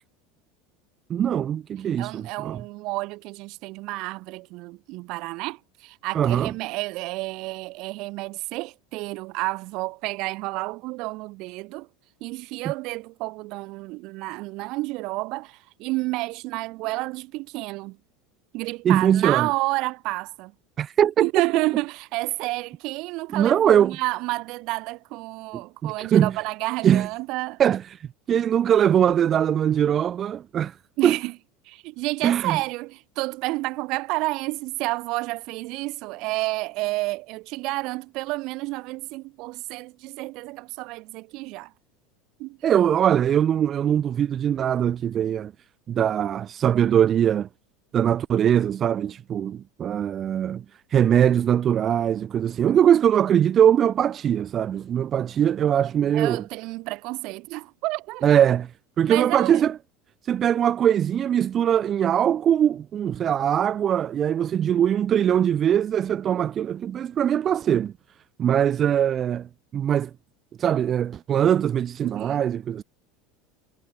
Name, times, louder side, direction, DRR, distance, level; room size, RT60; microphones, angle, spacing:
voice 1, 1.1-2.6 6.1-6.5 18.8-19.5 20.8-21.1 23.3-24.0 25.8-26.4 26.8-27.1 27.6-30.8 31.0-31.2 32.2-32.6 42.6-45.5 45.9-47.5 47.9-50.6 50.9-56.4 58.2-58.7 59.0-59.7 60.2-67.9 68.4-70.1 70.6-72.8, right 9 dB, 25° right, 1.0 m, -21 dB
voice 2, 2.0-11.9 12.2-18.0 18.5-20.5 21.2-27.6 31.0-31.3 31.6-41.7 42.4-42.6 56.1-58.4 59.1-59.7 72.0-72.5, right 22 dB, 45° right, 3.3 m, -30 dB
supercardioid pair, 175°, 0 cm